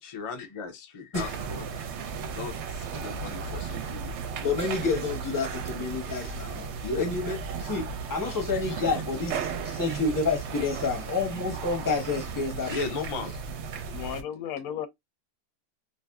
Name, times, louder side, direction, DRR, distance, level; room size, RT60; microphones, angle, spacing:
voice 1, 0.0-1.7 2.3-4.2 6.8-7.1 8.5-9.0 12.7-13.4, left 4 dB, 60° left, 0.3 m, -36 dB
sound 1, 1.1-14.2, right 6 dB, 65° right, 0.8 m, -35 dB
voice 2, 4.4-12.8, left 4 dB, 20° left, 0.7 m, -29 dB
voice 3, 13.9-14.9, left 10 dB, 90° left, 1.0 m, -34 dB
2.6 x 2.5 x 2.2 m
omnidirectional pair, 1.4 m